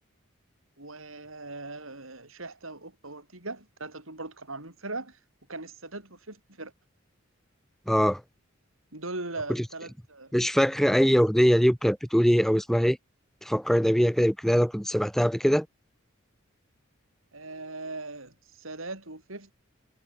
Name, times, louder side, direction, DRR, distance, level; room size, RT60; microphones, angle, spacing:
voice 1, 0.8-5.2 5.5-6.7 8.9-10.3 17.3-19.5, right 2 dB, 80° right, 7.4 m, -39 dB
voice 2, 7.9-8.2 9.5-9.6 10.3-13.0 13.4-15.7, equal, ahead, 1.9 m, -22 dB
head